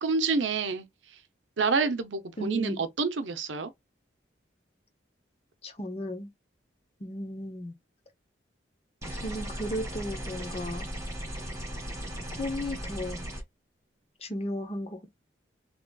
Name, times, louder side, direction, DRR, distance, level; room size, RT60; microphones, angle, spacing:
voice 1, 0.0-0.9 1.6-3.7, right 4 dB, 80° right, 0.7 m, -28 dB
voice 2, 2.4-2.8 5.6-6.3 7.0-7.7 9.2-10.9 12.4-13.3 14.2-15.2, equal, 30° left, 0.8 m, -35 dB
sound 1, 9.0-13.4, equal, 15° right, 1.7 m, -37 dB
3.8 x 3.0 x 2.3 m
head